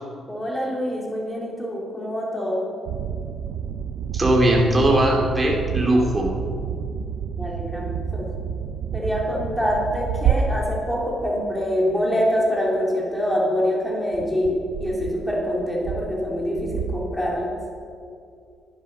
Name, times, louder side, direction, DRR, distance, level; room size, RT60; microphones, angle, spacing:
voice 1, 0.3-2.7 7.4-8.3 8.9-17.5, equal, 5° left, -3 dB, 3.8 m, -25 dB
sound 1, 2.9-11.8 12.2-12.6 12.8-12.9 14.1-17.8, right 7 dB, 80° right, 0.6 m, -29 dB
voice 2, 4.1-6.3, right 1 dB, 15° right, -2 dB, 2.7 m, -19 dB
12.0 x 11.0 x 5.7 m, 2.4 s
cardioid pair, 90°, 0 cm